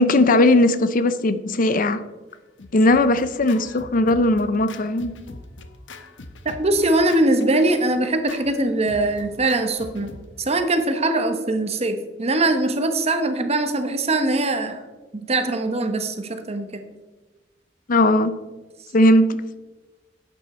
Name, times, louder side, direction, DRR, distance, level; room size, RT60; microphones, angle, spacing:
voice 1, 0.0-2.0 2.7-5.1 17.9-18.3 18.9-19.4, left 1 dB, 45° left, 13 dB, 0.6 m, -18 dB
Scratching (performance technique), 2.3-10.8, left 3 dB, 80° left, 0.9 m, -42 dB
voice 2, 6.4-10.1 10.4-14.8 15.1-16.8, right 2 dB, 35° right, 7 dB, 1.1 m, -22 dB
11.5 x 8.4 x 4.3 m, 1.2 s
head